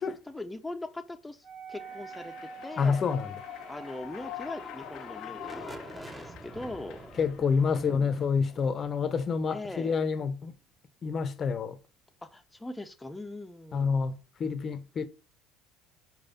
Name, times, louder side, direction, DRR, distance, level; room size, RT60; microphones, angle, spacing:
voice 1, 0.0-3.1 3.7-7.0 7.7-8.2 9.5-10.0 12.2-14.0, left 2 dB, 10° left, 0.9 m, -41 dB
Wind instrument woodwind instrument, 1.4-5.4, right 6 dB, 40° right, 1.8 m, -47 dB
Human voice / Clapping / Cheering, 1.8-7.8, left 14 dB, 65° left, 0.6 m, -45 dB
sound 1, 2.5-10.3, right 1 dB, 15° right, 1.1 m, -48 dB
voice 2, 2.8-3.3 7.2-10.5 11.0-11.8 13.7-15.1, left 5 dB, 40° left, 0.9 m, -28 dB
5.5 x 4.7 x 4.2 m
supercardioid pair, 85°, 0 cm